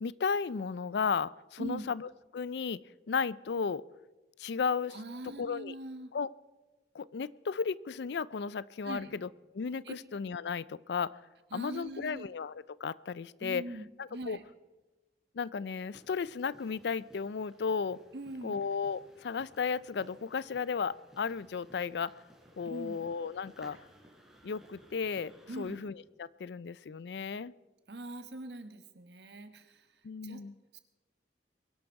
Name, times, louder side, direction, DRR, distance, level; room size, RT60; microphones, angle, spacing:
voice 1, 0.0-2.8 3.1-3.8 4.4-4.9 5.4-5.7 6.1-6.3 6.9-9.3 9.5-11.2 11.5-12.5 12.8-13.6 14.0-14.4 15.3-18.0 18.4-22.1 22.6-23.8 24.4-25.9 26.2-27.5 30.0-30.5, left 5 dB, 75° left, 20 dB, 0.4 m, -34 dB
voice 2, 4.9-6.1 8.8-9.1 9.8-10.0 11.5-12.2 13.4-14.4 18.1-18.5 22.6-23.0 25.5-25.8 27.9-30.4 30.7-30.8, right 1 dB, 80° right, 9 dB, 1.3 m, -42 dB
sound 1, 15.9-25.7, equal, 5° right, 4.0 m, -59 dB
22.5 x 11.5 x 4.7 m, 1.2 s
head